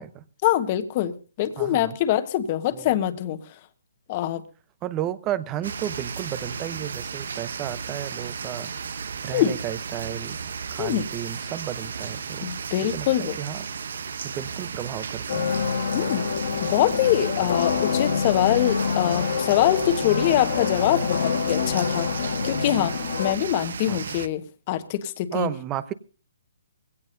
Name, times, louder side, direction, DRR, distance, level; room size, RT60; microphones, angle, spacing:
voice 1, 0.4-3.4 4.1-4.4 9.3-9.5 10.8-11.0 12.4-13.4 15.9-16.3 16.7-22.2 22.4-24.4 24.7-25.5, left 12 dB, 30° left, 1.2 m, -24 dB
voice 2, 1.6-2.0 2.7-3.0 4.8-8.7 9.2-10.4 10.7-12.5 12.8-14.0 14.2-15.5 23.9-24.2 25.3-25.9, right 12 dB, 20° right, 0.8 m, -33 dB
sound 1, 5.6-24.3, right 6 dB, 65° right, 0.9 m, -34 dB
sound 2, 15.3-23.3, left 6 dB, 60° left, 1.6 m, -26 dB
21.5 x 16.5 x 2.7 m
hypercardioid pair, 160°, 0 cm